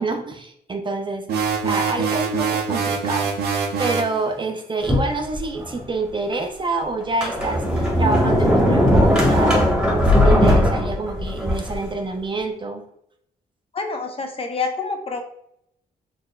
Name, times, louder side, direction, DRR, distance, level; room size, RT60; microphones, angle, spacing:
voice 1, 0.0-12.9, right 3 dB, 30° right, 5 dB, 0.4 m, -27 dB
sound 1, 1.3-4.2, right 5 dB, 75° right, 0.7 m, -23 dB
Sliding door, 4.8-5.8 6.3-6.4 7.0-11.8, left 1 dB, 5° right, 1.1 m, -18 dB
voice 2, 13.7-15.2, left 4 dB, 35° left, 4 dB, 0.6 m, -27 dB
4.1 x 3.1 x 2.2 m, 0.74 s
cardioid pair, 90°, 17 cm